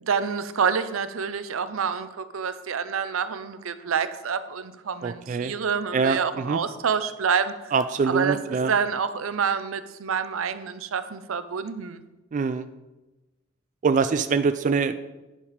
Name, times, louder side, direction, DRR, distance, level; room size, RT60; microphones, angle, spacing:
voice 1, 0.0-7.5 8.0-8.4 8.7-12.0, right 6 dB, 85° right, 12 dB, 0.6 m, -27 dB
voice 2, 5.0-5.5 5.9-6.6 7.7-8.7 12.3-12.7 13.8-15.0, right 5 dB, 40° right, 10 dB, 0.3 m, -24 dB
9.8 x 5.0 x 5.0 m, 1.1 s
head